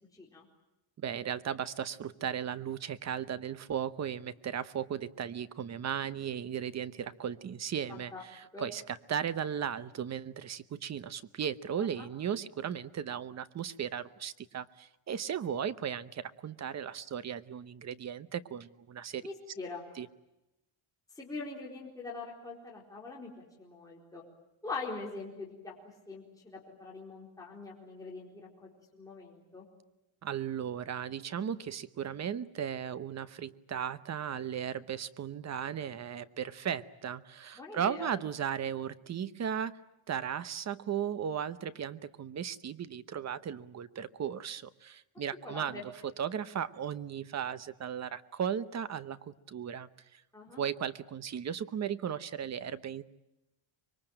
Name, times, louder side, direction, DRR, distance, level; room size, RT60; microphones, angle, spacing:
voice 1, 0.1-0.5 7.9-8.2 8.5-8.7 11.8-12.1 19.2-19.8 21.1-24.2 24.6-25.7 26.1-29.7 37.6-38.1 45.4-45.8 50.3-50.6, left 3 dB, 5° left, -4 dB, 4.3 m, -43 dB
voice 2, 1.0-19.2 20.0-20.1 30.2-39.7 40.1-45.9 46.2-50.2 50.6-53.0, right 8 dB, 35° right, 14 dB, 0.9 m, -36 dB
25.5 x 22.5 x 8.9 m, 0.94 s
cardioid pair, 170°, 48 cm